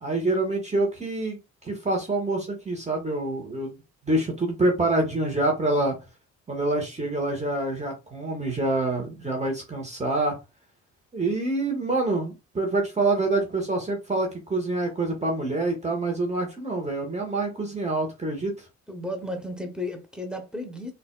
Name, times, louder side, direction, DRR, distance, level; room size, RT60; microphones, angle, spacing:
voice 1, 0.0-1.4 1.6-3.8 4.0-6.0 6.5-10.4 11.1-18.5, right 2 dB, 20° right, 1.4 m, -26 dB
voice 2, 18.9-20.9, left 1 dB, ahead, 1.1 m, -33 dB
3.9 x 2.7 x 2.3 m
hypercardioid pair, 60°, 34 cm